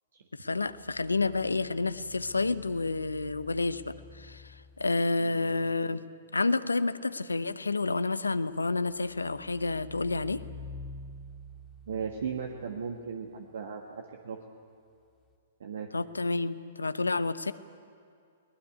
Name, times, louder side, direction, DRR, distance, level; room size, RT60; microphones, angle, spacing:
voice 1, 0.4-6.0 6.3-10.4 15.9-17.5, left 3 dB, 85° left, 14 dB, 0.8 m, -29 dB
sound 1, 0.5-5.2 8.5-13.2 15.2-15.3, left 2 dB, 20° left, 1.8 m, -49 dB
voice 2, 5.2-5.7 11.9-14.4 15.6-15.9, right 6 dB, 70° right, 3 dB, 1.6 m, -37 dB
21.0 x 19.0 x 9.6 m, 2.4 s
figure-of-eight pair, 115°, 0 cm